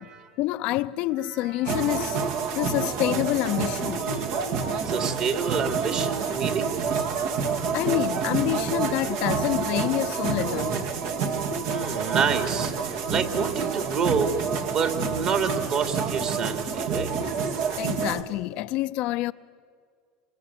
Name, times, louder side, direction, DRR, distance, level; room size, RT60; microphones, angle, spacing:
voice 1, 0.4-2.2 2.5-4.0 7.7-10.9 17.8-19.3, left 16 dB, 60° left, 0.6 m, -27 dB
voice 2, 1.2-2.0 4.8-6.7 11.6-14.4 14.7-17.1, right 6 dB, 45° right, 3.0 m, -28 dB
sound 1, 1.6-18.2, right 5 dB, 70° right, 2.1 m, -28 dB
27.0 x 25.5 x 8.0 m
supercardioid pair, 110°, 2 cm